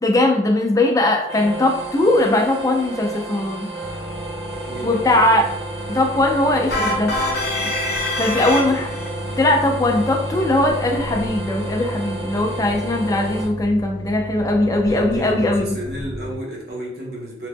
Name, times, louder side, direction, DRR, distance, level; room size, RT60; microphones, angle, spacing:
voice 1, 0.0-3.7 4.8-5.5 5.9-7.2 8.2-8.9 9.4-15.7, left 1 dB, 20° left, 1 dB, 0.4 m, -19 dB
sound 1, 1.3-13.4, right 2 dB, 35° right, 0.8 m, -32 dB
sound 2, 3.8-16.3, left 1 dB, 85° right, 0.9 m, -33 dB
voice 2, 4.7-5.0 5.3-5.5 8.4-9.0 14.9-17.5, right 1 dB, 60° right, -3 dB, 0.9 m, -33 dB
sound 3, 6.7-9.1, left 1 dB, 60° left, 0.7 m, -24 dB
2.9 x 2.1 x 3.4 m, 0.81 s
head